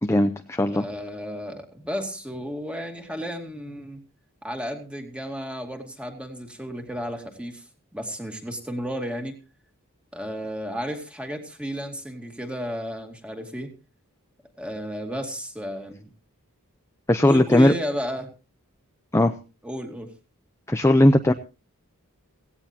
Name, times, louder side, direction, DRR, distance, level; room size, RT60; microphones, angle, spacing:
voice 1, 0.0-0.8 17.1-17.7 19.1-19.3 20.7-21.3, left 1 dB, 10° left, 7 dB, 0.6 m, -18 dB
voice 2, 0.7-4.0 4.4-7.7 7.9-9.4 10.1-13.7 14.6-16.1 17.2-18.3 19.6-20.1, equal, 5° right, 4 dB, 2.4 m, -33 dB
17.0 x 17.0 x 2.8 m, 0.32 s
head